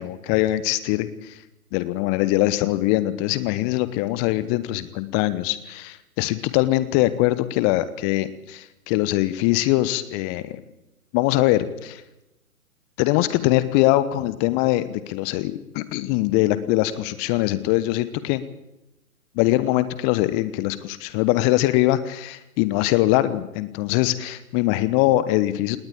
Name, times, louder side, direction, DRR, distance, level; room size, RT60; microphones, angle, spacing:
voice 1, 0.0-1.4 1.7-10.6 11.1-12.0 13.0-18.4 19.3-25.8, left 16 dB, 20° left, 15 dB, 1.1 m, -22 dB
19.0 x 19.0 x 8.7 m, 0.93 s
figure-of-eight pair, 125°, 44 cm